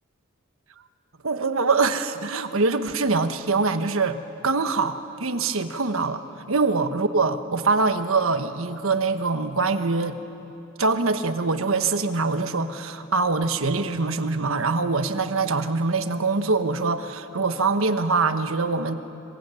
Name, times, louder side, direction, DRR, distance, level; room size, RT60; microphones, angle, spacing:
voice 1, 1.2-4.2 4.4-6.2 6.5-10.2 10.8-18.9, right 3 dB, 80° right, 9 dB, 1.3 m, -24 dB
26.0 x 24.0 x 9.2 m, 2.9 s
head